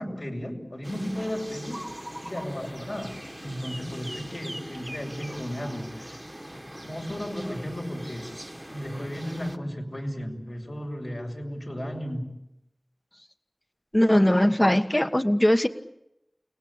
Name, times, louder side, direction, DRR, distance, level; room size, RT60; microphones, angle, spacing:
voice 1, 0.0-1.8 2.2-6.2 6.5-8.3 8.7-12.3, equal, 65° left, 1 dB, 6.5 m, -34 dB
sound 1, 0.8-9.6, equal, 15° right, 1.5 m, -41 dB
voice 2, 13.9-15.7, left 1 dB, 25° left, 9 dB, 1.5 m, -20 dB
29.5 x 19.5 x 8.8 m, 0.87 s
wide cardioid pair, 45°, 0 cm